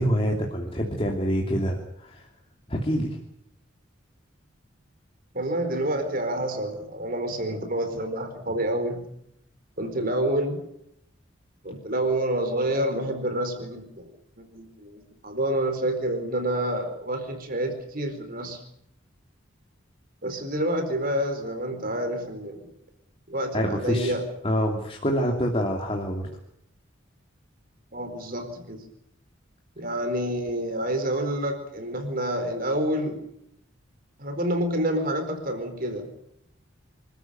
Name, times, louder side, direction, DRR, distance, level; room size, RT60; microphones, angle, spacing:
voice 1, 0.0-2.3 2.7-3.2 23.5-24.1 24.4-26.2, equal, 30° left, 0 dB, 3.0 m, -26 dB
voice 2, 5.3-9.1 9.8-10.6 11.6-14.1 14.4-18.6 20.2-22.6 23.3-24.2 27.9-28.8 29.8-33.2 34.2-36.1, right 1 dB, 50° right, 6 dB, 4.4 m, -28 dB
27.5 x 14.0 x 9.2 m, 0.74 s
head